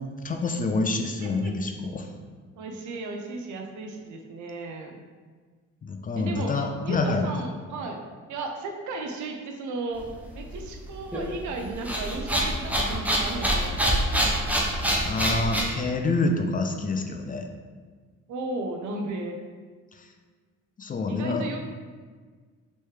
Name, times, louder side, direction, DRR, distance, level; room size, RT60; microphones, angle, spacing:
voice 1, 0.0-2.1 5.8-7.3 15.1-17.5 19.9-20.1 20.8-21.5, left 3 dB, 30° left, 4 dB, 0.3 m, -27 dB
voice 2, 1.2-1.5 2.6-5.0 6.2-6.6 6.8-8.0 8.3-10.1 10.3-13.9 18.3-19.4 21.1-21.6, right 3 dB, 75° right, 2 dB, 0.6 m, -35 dB
sound 1, 10.0-15.6, equal, 5° right, 0.6 m, -26 dB
3.2 x 3.1 x 3.2 m, 1.5 s
cardioid pair, 90°, 30 cm